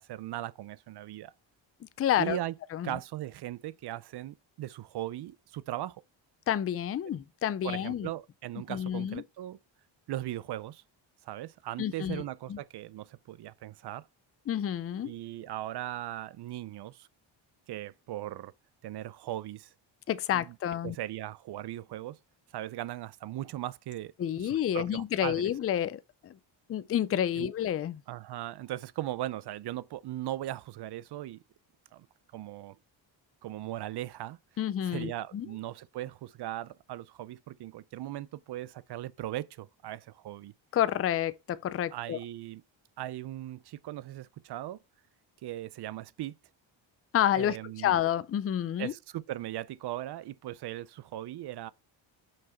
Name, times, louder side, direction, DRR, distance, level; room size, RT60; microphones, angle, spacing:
voice 1, 0.0-1.3 2.2-2.6 2.8-6.0 7.6-9.6 10.1-10.8 11.2-14.1 15.0-17.1 17.7-18.5 18.8-19.7 20.3-20.6 20.8-22.2 22.5-24.1 24.4-25.4 27.4-27.5 28.1-31.4 31.9-32.1 32.3-32.8 33.4-34.4 34.8-40.5 41.9-42.6 43.0-44.8 45.4-46.4 47.4-47.9 48.8-51.7, right 14 dB, 55° right, 0.5 m, -38 dB
voice 2, 2.0-2.4 2.7-3.0 6.5-8.1 8.7-9.2 11.8-12.2 12.5-12.6 14.5-15.1 20.1-21.0 24.2-26.4 26.7-28.0 34.6-35.5 40.7-42.2 47.1-48.9, left 10 dB, 30° left, 0.4 m, -29 dB
6.0 x 5.0 x 4.3 m
cardioid pair, 110°, 47 cm